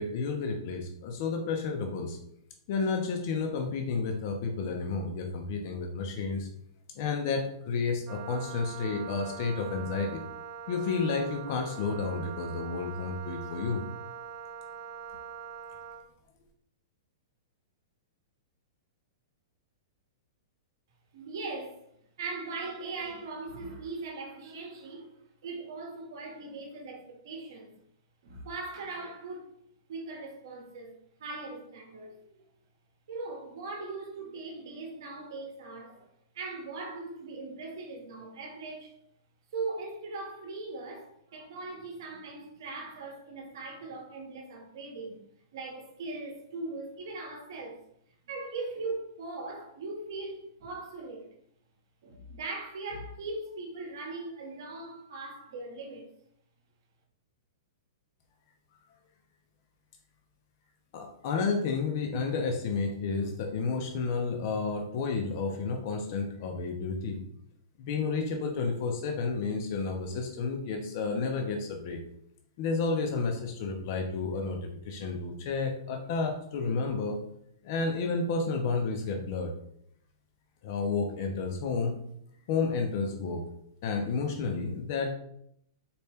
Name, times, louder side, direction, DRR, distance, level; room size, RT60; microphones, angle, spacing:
voice 1, 0.0-2.2 2.7-6.5 6.9-10.2 10.7-13.8 60.9-67.2 67.8-72.0 72.6-77.2 77.6-79.5 80.6-81.9 82.5-83.4 83.8-85.1, left 4 dB, 40° left, 0.5 m, -31 dB
Wind instrument woodwind instrument, 8.1-16.1, right 7 dB, 25° right, 0.3 m, -43 dB
voice 2, 21.1-21.8 22.2-25.1 25.4-27.7 28.2-29.5 29.9-30.9 31.2-32.5 33.1-36.1 36.3-39.0 39.5-45.2 45.5-47.8 48.3-51.3 52.0-56.1, right 3 dB, 55° right, 0.9 m, -40 dB
4.2 x 2.1 x 3.4 m
hypercardioid pair, 170°, 2 cm